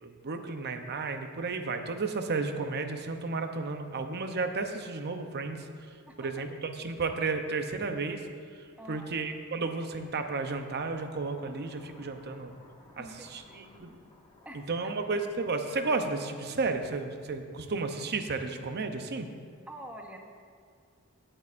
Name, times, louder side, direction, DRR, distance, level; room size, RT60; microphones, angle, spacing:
voice 1, 0.0-12.5 13.0-13.9 14.5-19.3, right 3 dB, 50° right, 6 dB, 0.7 m, -33 dB
voice 2, 8.8-9.2 13.0-13.1 13.5-14.0 14.4-14.6 19.7-20.2, right 1 dB, 5° right, 1 dB, 0.9 m, -46 dB
sound 1, 9.6-17.8, left 1 dB, 25° left, 1.6 m, -58 dB
16.5 x 8.7 x 2.5 m, 2.2 s
head